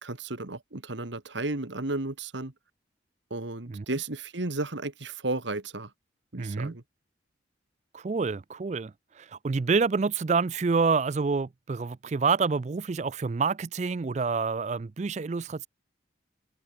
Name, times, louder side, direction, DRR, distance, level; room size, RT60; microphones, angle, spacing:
voice 1, 0.0-2.5 3.3-5.9 6.3-6.8, right 2 dB, 70° right, 1.8 m, -33 dB
voice 2, 6.4-6.8 7.9-15.7, right 4 dB, 35° right, 0.4 m, -28 dB
head